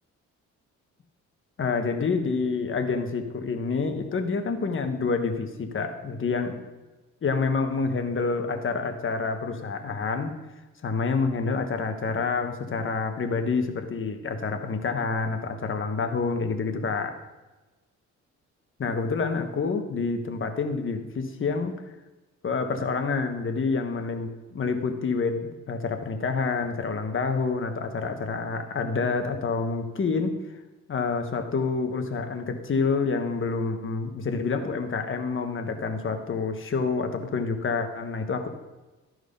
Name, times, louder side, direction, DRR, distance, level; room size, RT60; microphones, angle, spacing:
voice 1, 1.6-6.6 7.2-10.3 10.8-17.2 18.8-21.7 22.4-30.4 30.9-38.5, left 4 dB, 40° left, 5 dB, 1.4 m, -28 dB
13.5 x 4.7 x 5.4 m, 1.1 s
cardioid pair, 90°, 30 cm